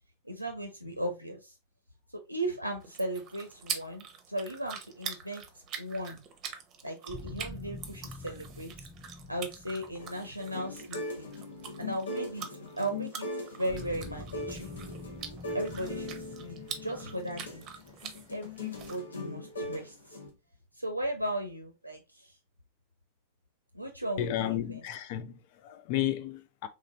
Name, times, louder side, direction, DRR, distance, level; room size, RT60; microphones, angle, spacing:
voice 1, 0.2-1.5 2.3-5.4 5.8-6.2 6.8-8.7 9.3-11.3 11.8-14.7 15.5-16.1 16.4-17.6 18.3-20.2 20.8-22.3 23.7-24.8, right 1 dB, 90° right, 0.6 m, -36 dB
sound 1, 2.8-19.0, right 7 dB, 35° right, 0.8 m, -44 dB
sound 2, 7.1-12.0 13.7-19.3, left 2 dB, 5° left, 0.5 m, -47 dB
sound 3, 10.0-20.3, left 2 dB, 70° left, 1.2 m, -40 dB
voice 2, 24.2-26.7, left 12 dB, 45° left, 0.6 m, -33 dB
3.7 x 3.1 x 3.2 m
figure-of-eight pair, 90°, 0 cm